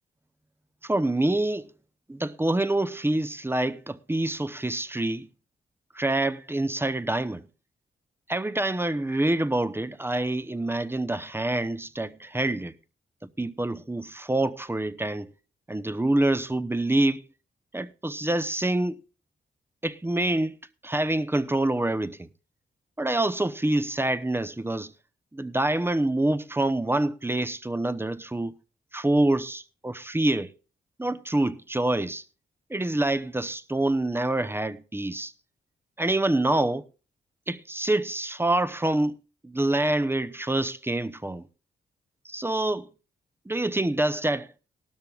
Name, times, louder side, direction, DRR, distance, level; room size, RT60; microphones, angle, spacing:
voice 1, 0.8-1.7 2.1-5.3 5.9-7.4 8.3-12.7 13.2-15.3 15.7-17.2 17.7-19.0 19.8-20.6 20.8-22.3 23.0-24.9 25.3-28.5 28.9-30.5 31.0-32.2 32.7-35.3 36.0-36.8 37.5-39.2 39.4-41.4 42.2-42.9 43.5-44.5, right 1 dB, 10° right, 0.8 m, -26 dB
18.0 x 12.5 x 2.4 m
cardioid pair, 80°, 19 cm